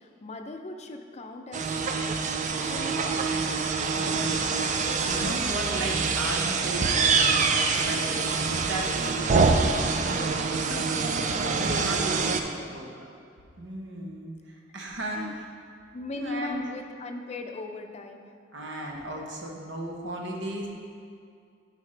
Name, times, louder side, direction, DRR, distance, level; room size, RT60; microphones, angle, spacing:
voice 1, 0.0-2.2 2.7-3.7 12.2-12.7 15.0-15.3 15.9-18.3, left 2 dB, 35° left, 5 dB, 0.5 m, -39 dB
sound 1, 1.5-12.4, right 4 dB, 40° right, 0.4 m, -25 dB
voice 2, 4.0-8.1 8.6-10.3 10.6-13.1 13.6-15.5 16.2-16.6 18.5-20.7, right 1 dB, 70° right, 0 dB, 1.0 m, -36 dB
9.4 x 5.1 x 3.3 m, 2.3 s
head